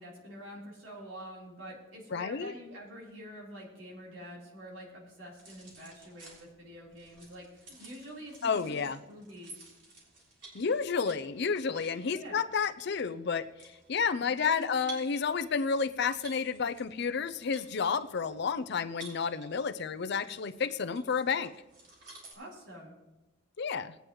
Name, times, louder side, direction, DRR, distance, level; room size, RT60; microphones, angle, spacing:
voice 1, 0.0-8.8 9.1-9.8 12.1-12.4 14.4-14.9 22.3-22.9, equal, 90° right, -4 dB, 3.9 m, -47 dB
voice 2, 2.1-2.5 8.4-9.0 10.5-13.5 13.9-21.5 23.6-23.9, left 5 dB, 60° left, 12 dB, 0.5 m, -31 dB
sound 1, 5.4-22.3, right 3 dB, 65° right, 3.5 m, -54 dB
19.5 x 9.1 x 3.1 m, 1.0 s
head